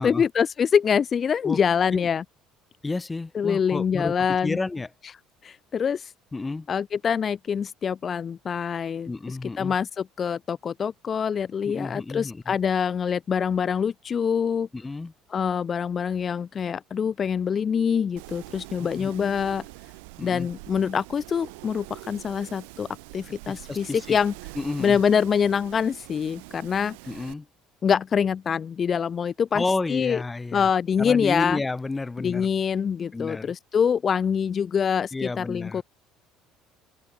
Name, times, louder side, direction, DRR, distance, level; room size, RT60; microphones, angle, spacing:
voice 1, 0.0-2.2 3.3-4.6 5.4-6.1 6.7-14.7 15.3-19.6 20.2-24.3 24.8-27.0 27.8-30.2 30.5-31.6 32.2-35.8, left 7 dB, 40° left, 2.6 m, -25 dB
voice 2, 2.8-4.1 4.4-4.9 6.3-6.7 9.1-9.7 11.7-12.6 14.7-15.1 18.8-19.1 20.2-20.5 23.5-24.2 24.6-25.0 27.1-27.5 29.5-30.7 31.0-32.5 33.1-33.5 35.1-35.8, left 3 dB, 20° left, 3.9 m, -31 dB
Wind, 18.2-27.3, right 29 dB, 85° right, 3.8 m, -44 dB
open air
supercardioid pair, 85°, 0 cm